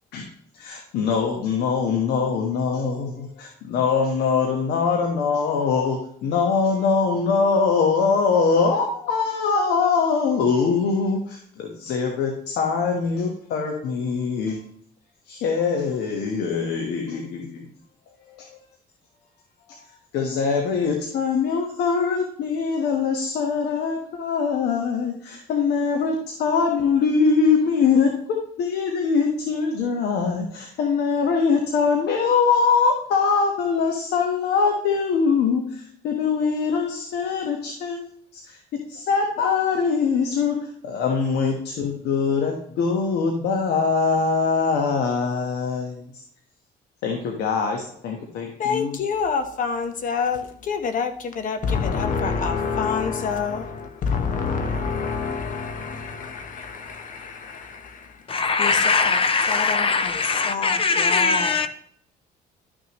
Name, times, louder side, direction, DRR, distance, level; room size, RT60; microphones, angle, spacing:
voice 1, 0.5-14.6 15.3-17.7 18.3-18.6 19.7-19.8 20.1-38.0 38.3-46.2 47.0-49.0, left 5 dB, 80° left, 1.4 m, -23 dB
voice 2, 48.6-58.2 58.6-59.2 59.5-61.7, left 5 dB, 50° left, 1.1 m, -27 dB
voice 3, 58.3-61.7, left 4 dB, 35° left, 0.6 m, -21 dB
12.0 x 6.3 x 3.1 m
cardioid pair, 110°, 17 cm